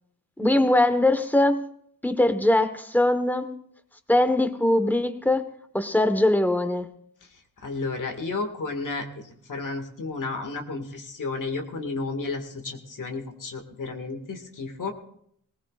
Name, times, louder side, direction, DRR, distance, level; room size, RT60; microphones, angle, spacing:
voice 1, 0.4-1.6 2.0-3.5 4.1-6.9, left 1 dB, 5° left, 8 dB, 1.3 m, -22 dB
voice 2, 7.6-9.1 9.5-14.9, left 3 dB, 65° left, 4 dB, 2.1 m, -32 dB
19.5 x 19.0 x 2.5 m, 0.70 s
cardioid pair, 80°, 34 cm